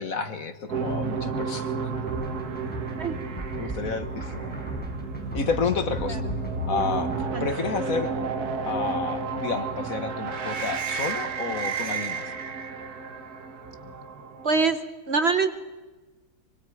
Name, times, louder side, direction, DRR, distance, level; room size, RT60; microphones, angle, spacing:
voice 1, 0.0-1.9 3.5-4.5 5.3-6.2 6.7-8.1 8.6-12.3, left 4 dB, 55° left, 9 dB, 1.7 m, -30 dB
sound 1, 0.7-14.7, right 4 dB, 60° right, 1.9 m, -32 dB
sound 2, 2.1-7.3, equal, 5° left, 4.8 m, -38 dB
voice 2, 14.4-14.8 15.1-15.5, right 4 dB, 45° right, 9 dB, 1.2 m, -23 dB
24.5 x 24.0 x 5.0 m, 1.2 s
omnidirectional pair, 1.8 m